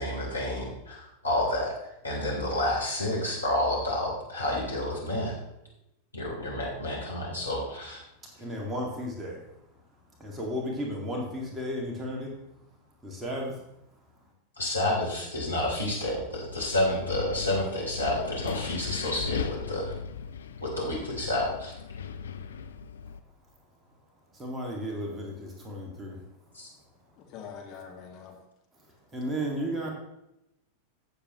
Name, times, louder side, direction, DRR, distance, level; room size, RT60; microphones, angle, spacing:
voice 1, 0.0-5.4 6.1-8.0 14.6-19.9 20.6-21.7 26.5-26.7, left 1 dB, 80° left, -4 dB, 3.2 m, -30 dB
voice 2, 8.3-9.5 10.2-12.3 13.0-13.7 24.3-26.2 28.8-29.9, equal, 15° right, -1 dB, 2.1 m, -34 dB
Wind, 16.3-23.2, left 6 dB, 65° left, 0.6 m, -37 dB
voice 3, 27.2-28.4, left 7 dB, 35° left, 0 dB, 2.1 m, -44 dB
15.5 x 7.0 x 3.0 m, 0.87 s
figure-of-eight pair, 90°, 0 cm